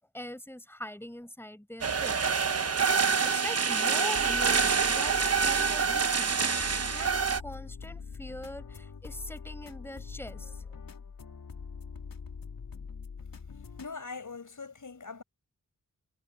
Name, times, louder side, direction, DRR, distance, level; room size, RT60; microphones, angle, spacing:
voice 1, 0.1-2.9 3.2-6.4 6.9-10.8, left 1 dB, 5° left, 7.4 m, -42 dB
sound 1, 1.8-7.4, right 5 dB, 45° right, 1.0 m, -26 dB
sound 2, 4.1-13.9, left 5 dB, 85° left, 4.0 m, -43 dB
voice 2, 13.8-15.2, left 4 dB, 65° left, 6.3 m, -41 dB
wide cardioid pair, 65°, 34 cm